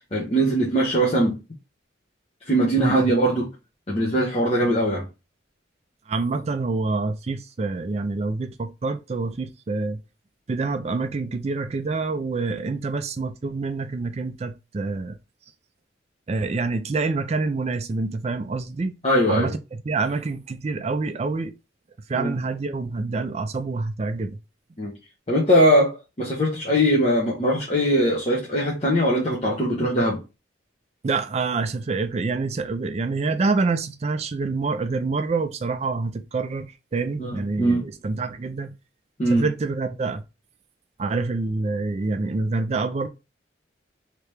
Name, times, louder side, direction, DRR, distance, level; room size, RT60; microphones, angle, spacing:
voice 1, 0.1-1.4 2.5-3.5 3.9-5.1 19.0-19.5 22.1-22.3 24.8-24.9 25.3-30.2 37.2-37.8 39.2-39.4, equal, 30° left, 0.8 m, -21 dB
voice 2, 2.8-3.1 6.1-10.0 10.5-15.2 16.3-19.0 19.3-19.6 19.8-21.5 22.1-24.4 31.0-38.8 39.3-40.2 41.0-43.1, right 3 dB, 35° right, 0.3 m, -26 dB
3.3 x 2.9 x 3.2 m
head